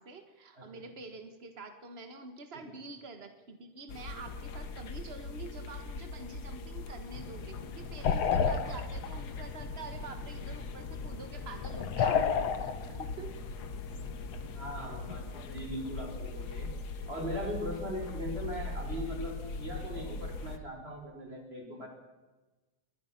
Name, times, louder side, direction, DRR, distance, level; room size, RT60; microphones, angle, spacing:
voice 1, 0.0-12.2 12.6-13.4, right 3 dB, 65° right, 7 dB, 0.6 m, -47 dB
sound 1, 3.9-20.6, left 3 dB, 85° left, 0.8 m, -41 dB
sound 2, 7.1-15.4, left 6 dB, 60° left, 2.3 m, -34 dB
voice 2, 14.5-16.7 17.1-21.9, equal, 15° right, 1 dB, 5.2 m, -39 dB
22.5 x 21.5 x 6.0 m, 1.2 s
omnidirectional pair, 3.7 m